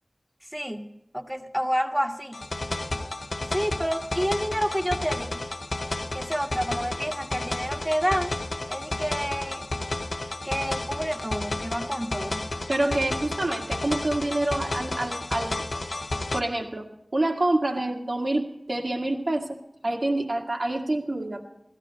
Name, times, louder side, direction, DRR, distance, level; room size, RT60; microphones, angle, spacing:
voice 1, 0.5-2.4 3.5-5.4 6.1-8.3 8.7-9.7 10.4-12.5, equal, 10° right, 3 dB, 1.5 m, -29 dB
sound 1, 2.3-16.4, left 2 dB, 85° left, 0.8 m, -32 dB
voice 2, 12.7-15.6 16.3-16.9 17.1-19.6 19.8-21.4, right 1 dB, 80° right, 1 dB, 2.0 m, -27 dB
16.5 x 13.5 x 4.2 m, 0.83 s
wide cardioid pair, 40°, 0 cm